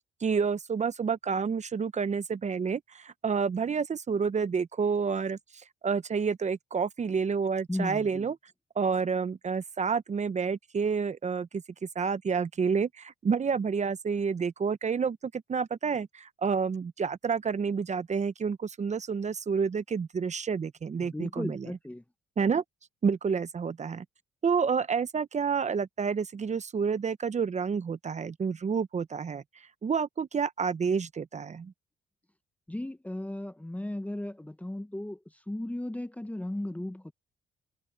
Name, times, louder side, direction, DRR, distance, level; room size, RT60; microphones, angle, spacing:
voice 1, 0.2-5.4 5.8-8.3 8.8-11.6 11.9-21.7 22.4-22.6 23.0-24.0 24.4-29.4 29.8-31.7, right 5 dB, 35° right, 0.8 m, -29 dB
voice 2, 7.7-8.3 21.0-22.0 32.7-37.1, left 1 dB, 5° left, 0.8 m, -36 dB
cardioid pair, 90°, 20 cm